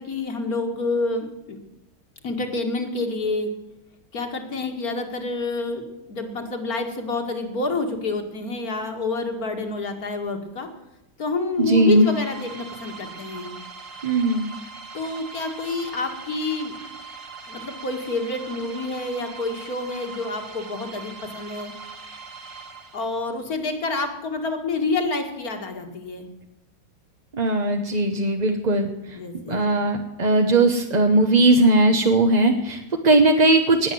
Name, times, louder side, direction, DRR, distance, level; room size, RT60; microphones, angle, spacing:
voice 1, 0.0-1.6 2.2-3.5 4.1-5.8 6.1-10.7 11.2-13.5 14.9-16.8 17.5-21.7 22.9-26.3 29.2-29.6, left 3 dB, 55° left, 5 dB, 2.5 m, -28 dB
voice 2, 11.6-12.1 14.0-14.5 27.3-29.2 29.5-33.9, right 2 dB, 30° right, 4 dB, 0.9 m, -19 dB
sound 1, 11.6-23.4, right 4 dB, 50° right, 1.7 m, -41 dB
19.5 x 8.1 x 7.7 m, 0.95 s
omnidirectional pair, 1.9 m